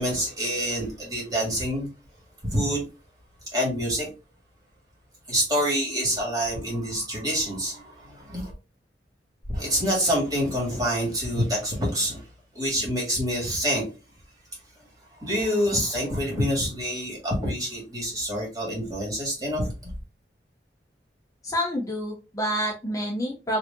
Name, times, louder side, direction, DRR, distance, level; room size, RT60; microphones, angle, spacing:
voice 1, 0.0-1.9 2.5-2.8 3.5-4.1 5.3-8.5 9.5-12.2 12.5-13.8 15.2-20.0, equal, 20° right, 2.1 m, -26 dB
voice 2, 21.4-23.6, equal, 20° left, 0.7 m, -28 dB
4.7 x 2.8 x 2.7 m
head